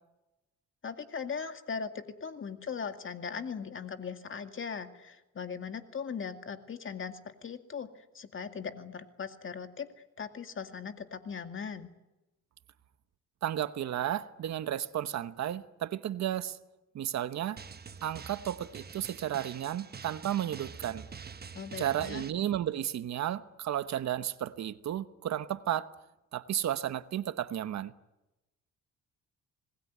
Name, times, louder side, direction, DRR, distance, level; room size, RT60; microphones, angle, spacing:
voice 1, 0.8-9.9 10.2-11.9 21.5-22.2, left 6 dB, 40° left, 2.2 m, -39 dB
voice 2, 13.4-16.6 16.9-17.6 18.0-21.1 21.8-25.9 26.3-27.9, right 11 dB, 65° right, 1.1 m, -33 dB
Drum, 17.6-22.3, right 6 dB, 30° right, 1.2 m, -46 dB
26.5 x 19.5 x 9.5 m
cardioid pair, 90°, 30 cm